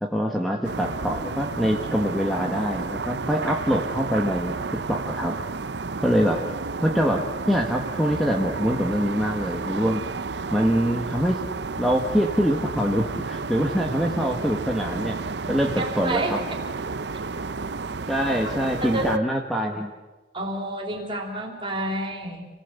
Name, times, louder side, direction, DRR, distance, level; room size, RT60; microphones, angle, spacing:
voice 1, 0.0-4.6 4.9-5.4 6.0-6.4 6.8-10.0 10.5-11.4 11.8-15.2 15.5-16.4 18.1-19.9, equal, ahead, 0 dB, 1.5 m, -24 dB
sound 1, 0.6-19.2, right 4 dB, 65° right, 0.7 m, -31 dB
voice 2, 15.8-16.6 18.3-18.5 18.8-19.1 20.3-22.5, right 1 dB, 30° right, 1 dB, 4.1 m, -30 dB
28.5 x 18.5 x 8.3 m, 1.3 s
head